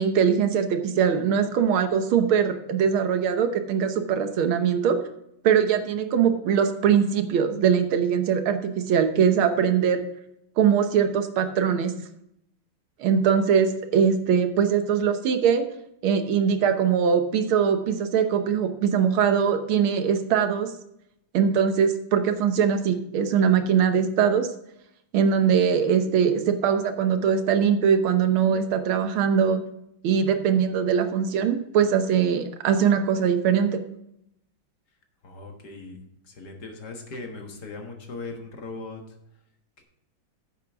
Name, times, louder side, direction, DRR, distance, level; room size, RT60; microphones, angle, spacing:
voice 1, 0.0-5.0 5.4-10.0 10.6-11.9 13.0-15.6 16.0-20.7 21.3-24.5 25.1-29.6 30.0-33.8, right 7 dB, 90° right, 7 dB, 1.8 m, -22 dB
voice 2, 35.2-36.0 36.2-39.2 39.8-39.9, left 3 dB, 55° left, 3 dB, 1.9 m, -39 dB
9.6 x 8.1 x 3.5 m, 0.77 s
omnidirectional pair, 2.2 m